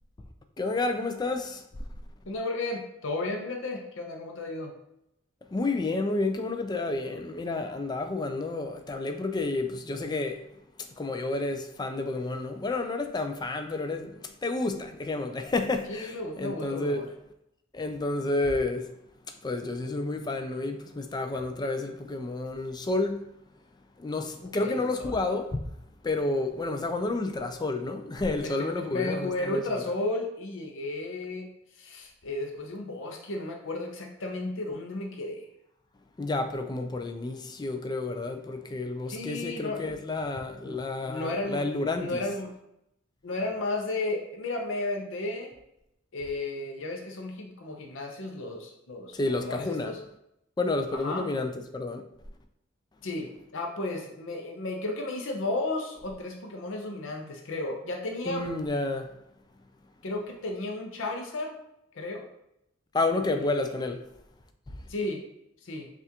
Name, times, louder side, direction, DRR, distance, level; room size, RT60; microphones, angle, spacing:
voice 1, 0.6-1.6 5.5-10.4 11.0-17.0 17.7-18.9 19.4-23.3 24.0-25.6 26.0-29.6 36.2-42.2 49.1-50.0 50.6-52.0 58.3-59.1 62.9-64.0, left 2 dB, 20° left, 0.4 m, -30 dB
voice 2, 2.3-4.7 15.9-17.1 24.6-25.2 28.4-31.5 31.8-35.5 39.1-39.9 40.6-41.6 41.9-42.5 43.2-45.5 46.1-50.0 50.9-51.2 53.0-58.5 60.0-61.6 61.9-62.2 63.3-63.8 64.9-65.2 65.6-65.9, left 2 dB, 70° left, 0.6 m, -33 dB
5.6 x 2.5 x 2.8 m
head